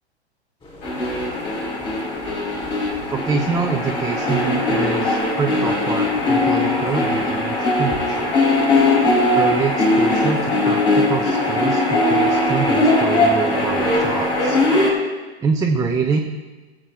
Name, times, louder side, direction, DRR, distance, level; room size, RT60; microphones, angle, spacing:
sound 1, 0.6-14.4, left 1 dB, 15° left, 4.5 m, -38 dB
sound 2, 0.8-14.9, left 2 dB, 50° left, 4.2 m, -20 dB
voice 1, 3.1-8.3 9.3-14.6 15.4-16.2, right 5 dB, 10° right, 1 dB, 0.8 m, -25 dB
18.5 x 7.5 x 4.6 m, 1.2 s
figure-of-eight pair, 105°, 33 cm